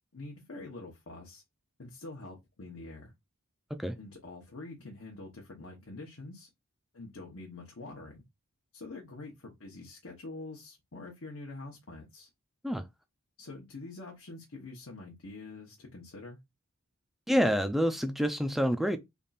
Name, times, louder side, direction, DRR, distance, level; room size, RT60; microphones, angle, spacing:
voice 1, 0.1-1.4 1.8-3.1 4.0-6.5 6.9-8.2 8.7-12.3 13.4-16.4, left 2 dB, 70° left, 0.9 m, -45 dB
voice 2, 17.3-19.0, equal, ahead, 0.4 m, -27 dB
3.5 x 2.4 x 4.0 m
head